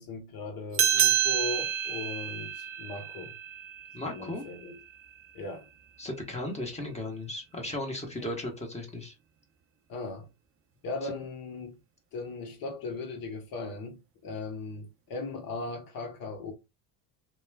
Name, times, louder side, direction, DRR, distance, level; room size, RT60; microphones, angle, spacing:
voice 1, 0.0-3.3 4.0-4.8 5.3-5.7 8.2-8.3 9.9-10.3 10.8-11.8 12.1-16.5, left 3 dB, 45° left, 1.1 m, -38 dB
sound 1, 0.7-5.6, right 9 dB, 30° right, 0.5 m, -30 dB
voice 2, 3.9-4.4 6.0-9.1 11.0-11.1, left 1 dB, 15° left, 1.1 m, -36 dB
2.9 x 2.2 x 2.2 m
hypercardioid pair, 75°, 47 cm